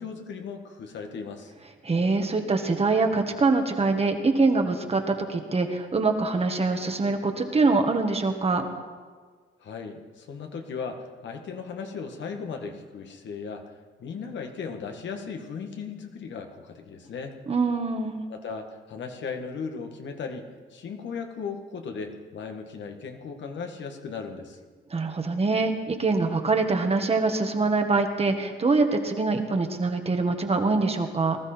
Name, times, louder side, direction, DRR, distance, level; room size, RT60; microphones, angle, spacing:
voice 1, 0.0-1.5 9.6-17.4 18.3-24.6, left 5 dB, 65° left, 4 dB, 1.7 m, -37 dB
voice 2, 1.8-8.7 17.5-18.2 24.9-31.4, right 3 dB, 30° right, 5 dB, 1.6 m, -24 dB
19.5 x 13.0 x 4.4 m, 1.5 s
cardioid pair, 90°, 20 cm